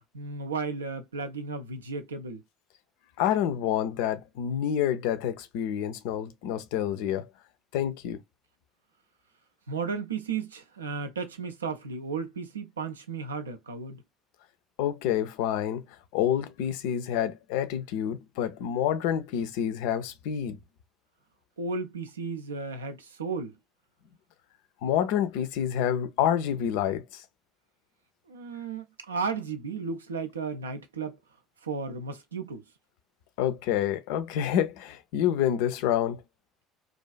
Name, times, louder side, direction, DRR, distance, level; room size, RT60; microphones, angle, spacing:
voice 1, 0.1-2.4 9.7-14.0 21.6-23.5 28.3-31.2 31.6-32.6, right 4 dB, 80° right, 0.3 m, -34 dB
voice 2, 3.2-7.2 7.7-8.2 14.8-15.8 16.1-20.6 24.8-27.2 33.4-36.2, left 10 dB, 65° left, 0.3 m, -28 dB
2.4 x 2.3 x 2.2 m
figure-of-eight pair, 60°, 0 cm